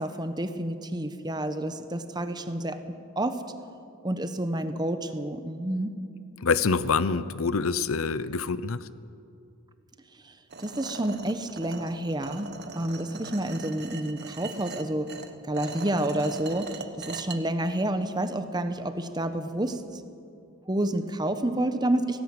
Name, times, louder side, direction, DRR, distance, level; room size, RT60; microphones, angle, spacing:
voice 1, 0.0-3.4 4.0-5.9 10.2-10.3 10.6-15.1 15.4-20.0 20.7-22.2, right 1 dB, 20° right, 9 dB, 1.0 m, -29 dB
voice 2, 6.4-8.9, left 5 dB, 70° left, 15 dB, 0.7 m, -26 dB
sound 1, 10.5-17.4, right 4 dB, 50° right, 1.1 m, -40 dB
17.5 x 17.0 x 8.8 m, 2.5 s
head